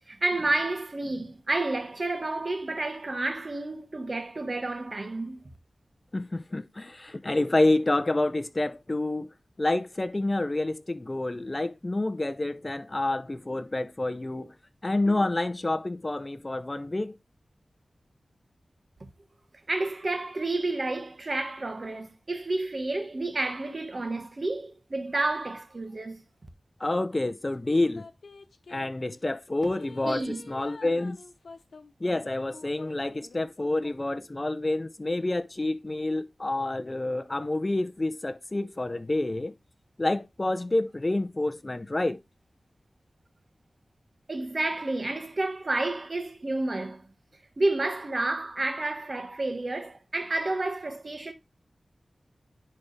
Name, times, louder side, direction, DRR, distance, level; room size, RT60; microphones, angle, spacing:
voice 1, 0.1-5.5 19.7-26.2 30.0-30.5 44.3-47.1 47.6-51.3, right 2 dB, 45° right, 1.4 m, -30 dB
voice 2, 6.1-9.3 9.6-14.5 14.8-17.2 26.8-28.0 28.7-31.2 32.0-39.5 40.0-42.2, left 2 dB, 30° left, 0.7 m, -28 dB
sound 1, 27.7-28.9 29.6-34.1 34.6-34.7, left 4 dB, 90° left, 0.9 m, -48 dB
10.5 x 3.6 x 3.3 m
wide cardioid pair, 90°, 0 cm